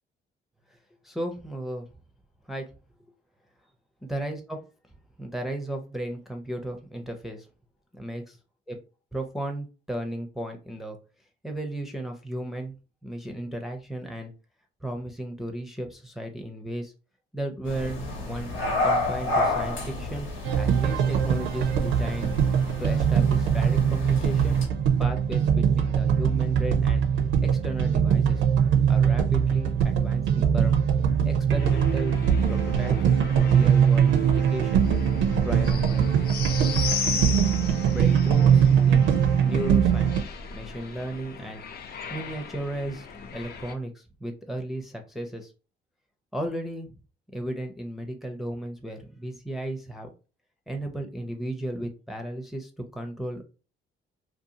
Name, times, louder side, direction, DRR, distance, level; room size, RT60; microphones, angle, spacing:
voice 1, 1.0-1.9 2.5-2.7 4.0-4.6 5.2-7.5 7.9-8.4 8.7-8.8 9.1-11.0 11.4-12.8 13.0-14.3 14.8-16.9 17.3-18.5 18.8-20.3 20.5-22.3 22.8-24.6 25.0-27.0 27.4-28.4 28.9-30.8 31.2-32.2 32.5-33.0 33.3-34.9 35.4-36.1 37.9-39.1 39.4-41.6 42.1-45.5 46.3-46.9 47.3-50.1 50.7-53.4, right 1 dB, ahead, 3 dB, 0.4 m, -34 dB
sound 1, 17.7-24.7, left 2 dB, 80° left, 1.0 m, -30 dB
sound 2, 20.4-40.2, right 7 dB, 75° right, 0.5 m, -22 dB
sound 3, 31.6-43.7, left 5 dB, 50° left, 0.4 m, -36 dB
2.6 x 2.3 x 2.7 m, 0.33 s
cardioid pair, 90°, 20 cm